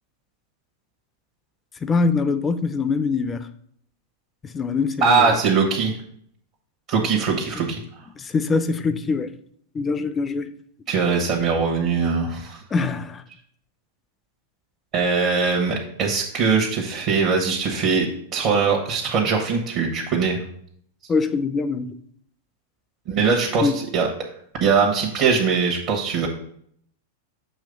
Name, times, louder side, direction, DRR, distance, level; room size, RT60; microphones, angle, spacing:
voice 1, 1.8-3.5 4.5-5.3 8.2-9.3 9.7-10.5 12.7-13.2 21.1-22.0 23.6-23.8, left 4 dB, 20° left, 0.5 m, -23 dB
voice 2, 5.0-5.9 6.9-7.8 10.9-12.6 14.9-18.1 18.3-20.4 23.1-24.1 24.6-26.3, right 5 dB, 50° right, 1.2 m, -21 dB
6.4 x 3.1 x 5.3 m
hypercardioid pair, 100°, 0 cm